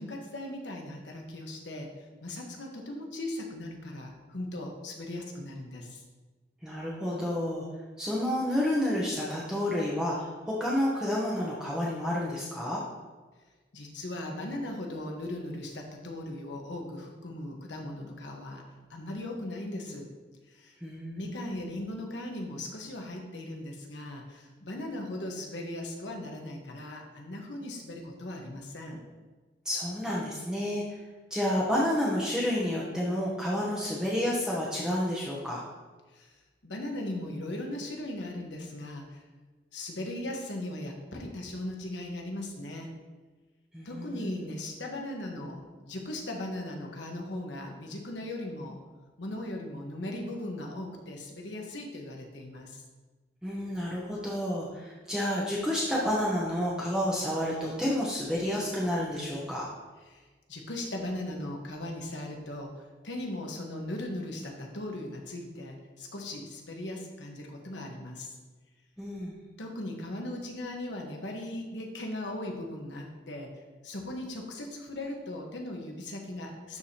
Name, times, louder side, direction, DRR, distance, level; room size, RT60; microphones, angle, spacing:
voice 1, 0.0-1.9 2.2-6.0 13.7-18.6 18.9-20.1 20.5-20.7 21.1-29.0 36.1-36.4 36.6-39.2 39.7-42.9 43.8-48.8 49.2-52.8 60.1-68.3 69.6-73.5 73.8-76.8, left 1 dB, 85° left, 1 dB, 1.3 m, -38 dB
voice 2, 6.6-7.7 8.0-12.8 20.8-21.7 29.6-30.8 31.3-35.6 43.7-44.5 53.4-59.7 69.0-69.4, left 1 dB, 5° right, -6 dB, 0.9 m, -30 dB
12.0 x 4.8 x 2.9 m, 1.3 s
head